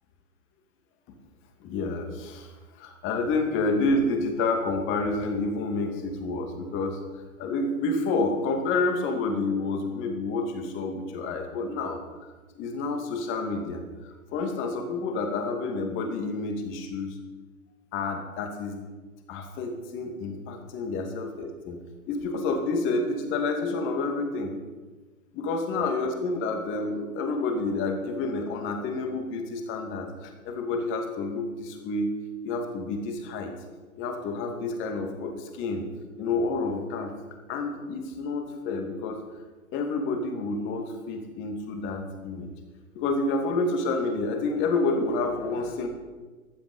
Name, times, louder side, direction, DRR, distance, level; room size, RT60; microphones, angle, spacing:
voice 1, 1.6-12.0 12.5-17.1 17.9-18.8 19.3-21.8 22.1-24.5 25.3-32.1 32.4-33.5 34.0-35.8 36.2-37.1 37.5-39.2 39.7-42.5 42.9-45.9, left 3 dB, 30° left, 4 dB, 2.5 m, -29 dB
15.0 x 12.0 x 5.5 m, 1.3 s
figure-of-eight pair, 120°, 42 cm